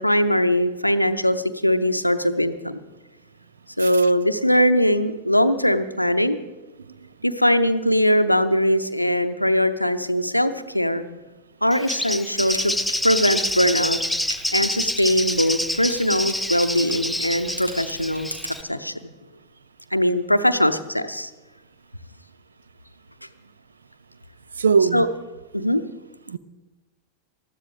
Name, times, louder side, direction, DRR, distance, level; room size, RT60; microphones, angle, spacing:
voice 1, 0.0-2.8 3.8-6.4 7.2-11.0 11.6-12.7 13.0-14.0 14.5-18.4 18.7-18.9 19.9-21.3 24.9-25.1 25.5-25.8, equal, 90° left, 0.6 m, -21 dB
voice 2, 3.8-4.1 6.9-7.1 24.6-25.1 26.3-26.4, right 5 dB, 70° right, 0.4 m, -21 dB
Bird, 11.7-18.6, left 1 dB, 5° left, 0.4 m, -27 dB
sound 1, 12.3-18.6, right 1 dB, 85° right, 1.6 m, -39 dB
20.0 x 13.5 x 3.3 m
figure-of-eight pair, 90°, 0 cm